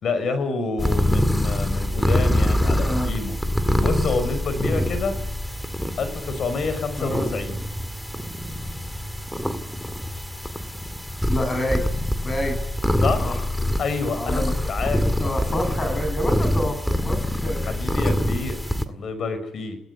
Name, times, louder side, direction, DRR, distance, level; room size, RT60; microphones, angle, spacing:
voice 1, 0.0-3.4 3.8-5.2 6.0-7.6 13.0-13.5 13.8-15.1 17.7-19.8, left 4 dB, 60° left, 11 dB, 5.3 m, -28 dB
sound 1, 0.8-18.8, left 1 dB, 5° left, 2.1 m, -25 dB
voice 2, 2.8-3.1 7.0-7.3 11.3-11.8 12.2-12.6 13.2-13.3 14.2-14.5 15.2-17.7, left 1 dB, 30° left, 7 dB, 7.6 m, -28 dB
29.0 x 17.5 x 8.4 m, 0.77 s
cardioid pair, 90°, 0 cm